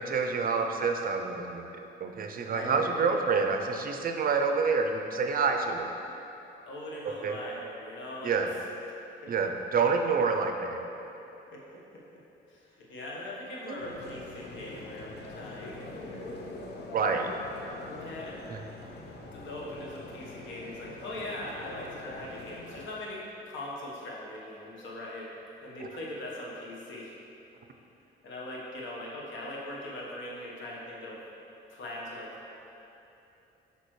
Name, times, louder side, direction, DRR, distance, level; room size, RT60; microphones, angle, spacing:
voice 1, 0.0-1.6 2.0-5.9 7.1-7.4 8.2-8.5 9.3-10.8 13.7-13.8 16.9-17.3 18.5-18.6, right 5 dB, 45° right, 4 dB, 0.5 m, -28 dB
voice 2, 2.5-3.2 6.6-8.4 11.5-11.6 12.5-15.9 18.0-18.4 18.9-19.0 19.3-23.2 23.4-25.3 25.6-27.1 28.2-31.2 31.7-32.5, left 1 dB, 75° left, -4 dB, 1.3 m, -40 dB
sound 1, 13.8-22.9, left 2 dB, 55° left, 0.8 m, -44 dB
6.4 x 5.2 x 3.2 m, 3.0 s
cardioid pair, 90°, 20 cm